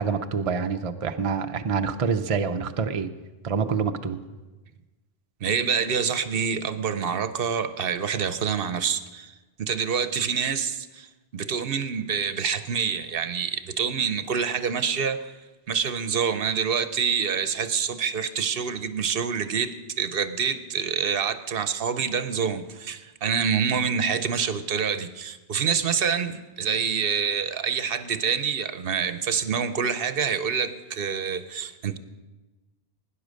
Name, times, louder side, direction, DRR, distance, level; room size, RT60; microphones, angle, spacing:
voice 1, 0.0-3.1 3.4-4.2, right 5 dB, 40° right, 7 dB, 0.6 m, -26 dB
voice 2, 5.4-15.4 15.7-32.0, right 6 dB, 60° right, 12 dB, 0.9 m, -27 dB
17.0 x 10.0 x 6.3 m, 1.2 s
omnidirectional pair, 1.1 m